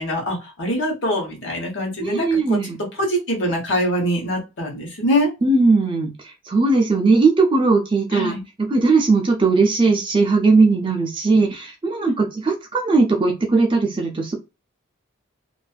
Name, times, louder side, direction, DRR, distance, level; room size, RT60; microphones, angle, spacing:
voice 1, 0.0-2.6 2.9-5.3 8.1-8.4, equal, 55° left, 1 dB, 1.0 m, -23 dB
voice 2, 2.0-2.8 5.4-6.1 6.5-8.3 8.6-14.3, right 3 dB, 25° right, 2 dB, 0.4 m, -18 dB
2.5 x 2.4 x 2.2 m, 0.26 s
head